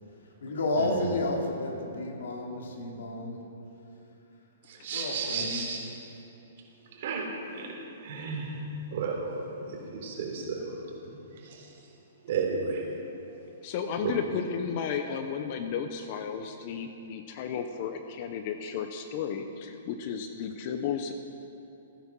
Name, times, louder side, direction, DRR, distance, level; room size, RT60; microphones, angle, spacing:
voice 1, 0.4-3.4 4.9-5.7, left 2 dB, 80° left, 0 dB, 2.8 m, -31 dB
voice 2, 4.7-5.8 7.0-7.3 7.5-7.7 8.0-8.5 8.9-9.4 9.9-10.7 11.5-11.6 12.2-12.9 14.0-14.1, right 5 dB, 55° right, -1 dB, 3.5 m, -32 dB
voice 3, 13.6-21.1, left 7 dB, 40° left, 7 dB, 0.8 m, -33 dB
15.5 x 9.8 x 6.2 m, 2.9 s
hypercardioid pair, 155°, 0 cm